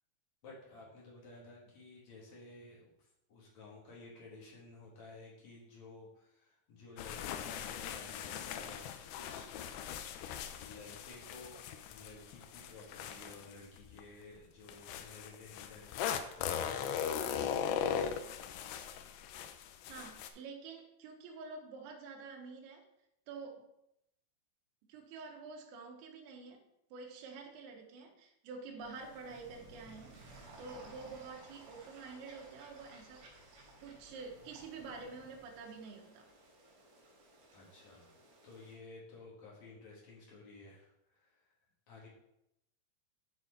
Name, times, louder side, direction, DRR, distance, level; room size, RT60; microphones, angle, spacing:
voice 1, 0.4-9.5 10.6-11.6 11.9-17.0 17.2-18.2 37.5-41.5 41.9-42.1, left 3 dB, 50° left, -4 dB, 2.2 m, -54 dB
sound 1, 7.0-14.0 14.7-20.3, left 8 dB, 85° left, 2.6 m, -39 dB
voice 2, 19.9-22.8 23.3-23.7 24.9-26.6 26.9-30.2 30.6-33.2 33.8-36.3, right 4 dB, 85° right, 1 dB, 4.0 m, -48 dB
sound 2, 28.8-36.1, right 2 dB, 15° right, 2.6 m, -61 dB
sound 3, 28.9-38.8, right 2 dB, 60° right, 4.4 m, -59 dB
12.0 x 4.5 x 4.3 m, 0.81 s
omnidirectional pair, 5.8 m